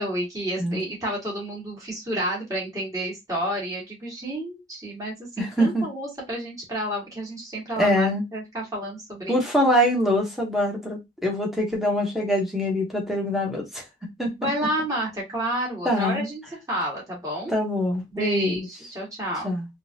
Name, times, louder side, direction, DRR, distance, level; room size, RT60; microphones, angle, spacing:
voice 1, 0.0-9.3 14.4-16.4 16.7-17.6 18.1-19.5, right 1 dB, 20° right, 1.8 m, -30 dB
voice 2, 5.4-5.8 7.8-8.2 9.3-13.8 14.2-14.3 15.8-16.3 17.5-18.7 19.4-19.7, equal, ahead, 1.0 m, -24 dB
3.8 x 2.4 x 2.8 m
head